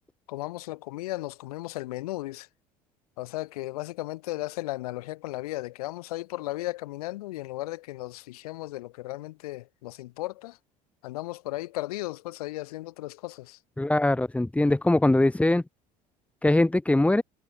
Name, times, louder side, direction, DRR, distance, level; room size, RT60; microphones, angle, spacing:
voice 1, 0.3-2.5 3.2-10.6 11.0-13.6, left 18 dB, 65° left, 1.6 m, -35 dB
voice 2, 13.8-15.6 16.4-17.2, left 2 dB, 5° left, 1.7 m, -22 dB
figure-of-eight pair, 65°, 20 cm